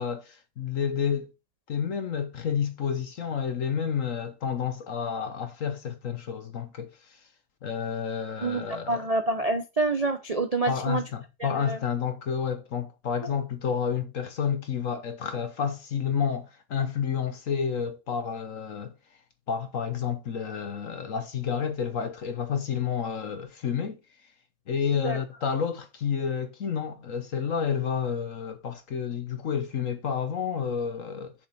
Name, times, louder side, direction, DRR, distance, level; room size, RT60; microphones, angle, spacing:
voice 1, 0.0-1.3 1.7-6.9 7.6-9.0 10.7-18.9 19.5-24.0 24.7-31.3, left 7 dB, 50° left, 1.1 m, -30 dB
voice 2, 8.4-11.0 11.4-11.8 25.0-25.2, right 2 dB, 75° right, 0.3 m, -27 dB
7.2 x 6.2 x 4.5 m
omnidirectional pair, 2.2 m